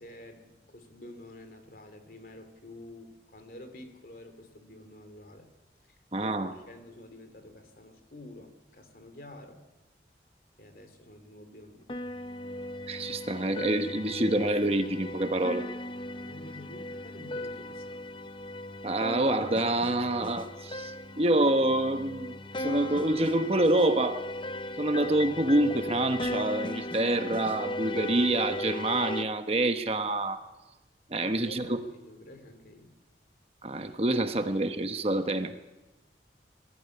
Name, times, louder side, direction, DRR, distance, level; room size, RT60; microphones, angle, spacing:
voice 1, 0.0-5.5 5.8-9.6 10.6-11.9 15.9-18.2 31.2-33.0, left 1 dB, 55° left, 8 dB, 3.0 m, -49 dB
voice 2, 6.1-6.5 12.9-15.7 18.8-24.2 24.8-30.4 31.1-31.8 33.6-35.5, right 1 dB, 35° right, 8 dB, 1.1 m, -27 dB
sound 1, 11.9-29.2, left 1 dB, 30° left, 0.7 m, -37 dB
21.5 x 14.5 x 9.9 m, 1.1 s
head